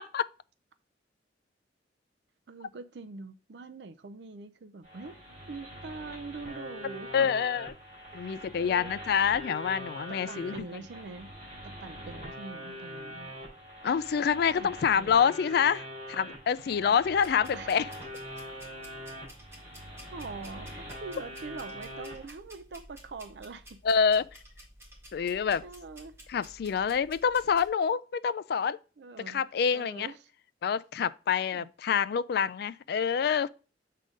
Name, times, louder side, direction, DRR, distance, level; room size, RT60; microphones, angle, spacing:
voice 1, 2.5-5.2 5.5-7.3 8.1-8.9 10.1-11.3 11.6-13.3 14.6-15.4 16.9-17.0 17.5-17.8 19.8-23.8 25.6-26.2 29.0-29.4 29.7-30.2 31.5-31.7, right 4 dB, 70° right, 0.5 m, -44 dB
sound 1, 4.8-22.3, equal, 45° right, 4.3 m, -43 dB
voice 2, 7.1-7.7 8.1-10.6 13.8-17.9 23.8-24.3 25.1-25.6 26.3-28.8 29.3-30.1 30.6-33.5, left 7 dB, 60° left, 0.3 m, -27 dB
sound 2, 17.2-27.7, equal, 15° right, 2.1 m, -53 dB
7.6 x 3.7 x 5.1 m
head